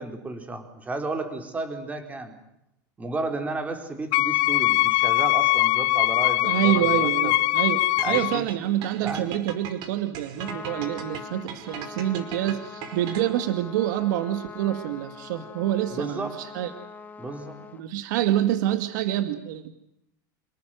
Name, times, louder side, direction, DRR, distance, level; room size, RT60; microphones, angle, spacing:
voice 1, 0.0-2.3 3.0-7.4 8.0-8.4 9.0-9.3 15.9-16.4 17.2-17.6, right 2 dB, 15° right, 7 dB, 4.4 m, -33 dB
Wind instrument woodwind instrument, 4.1-8.4, left 20 dB, 45° left, 1.2 m, -22 dB
voice 2, 6.4-16.7 17.8-19.7, right 12 dB, 65° right, 10 dB, 2.2 m, -27 dB
sound 1, 8.0-13.5, right 8 dB, 45° right, 5.3 m, -38 dB
Trumpet, 10.2-17.8, left 5 dB, 15° left, 2.2 m, -42 dB
28.5 x 19.0 x 9.2 m, 0.80 s
supercardioid pair, 145°, 11 cm